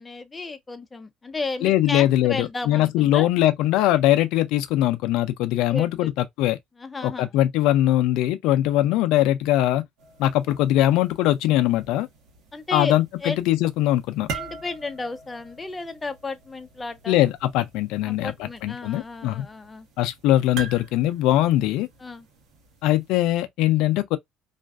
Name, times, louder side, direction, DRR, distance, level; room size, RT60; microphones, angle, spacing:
voice 1, 0.0-3.3 5.5-6.1 6.8-7.3 12.5-13.4 14.3-17.2 18.0-19.9 22.0-22.3, left 3 dB, 20° left, 0.5 m, -33 dB
voice 2, 1.6-6.6 7.0-9.8 10.2-12.1 12.7-14.3 17.1-18.3 18.6-19.5 20.0-21.9 22.8-24.2, left 14 dB, 85° left, 0.4 m, -21 dB
sound 1, 10.0-23.2, right 4 dB, 80° right, 1.0 m, -43 dB
2.5 x 2.3 x 2.2 m
cardioid pair, 105°, 0 cm